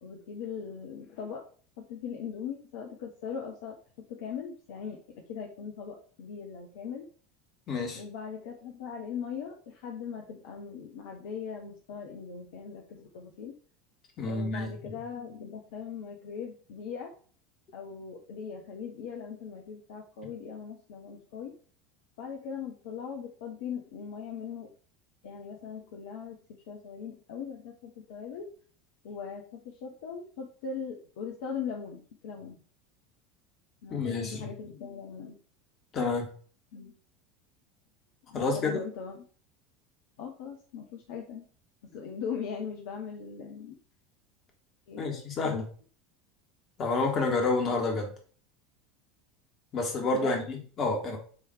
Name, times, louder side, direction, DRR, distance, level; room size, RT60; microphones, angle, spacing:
voice 1, 0.0-1.5 1.9-3.7 4.1-7.1 7.9-13.6 14.2-17.1 17.7-21.6 22.2-24.7 25.2-26.4 26.7-28.5 29.0-32.6 33.8-35.4 36.7-36.9 38.3-39.2 40.2-41.4 41.8-43.8 44.9-45.6 50.1-50.4, left 6 dB, 60° left, 1 dB, 0.9 m, -40 dB
voice 2, 7.7-8.0 14.2-15.0 33.9-34.5 35.9-36.3 38.3-38.8 45.0-45.6 46.8-48.1 49.7-51.2, left 3 dB, 35° left, 3 dB, 2.0 m, -29 dB
7.5 x 3.3 x 4.8 m, 0.43 s
figure-of-eight pair, 75°, 0 cm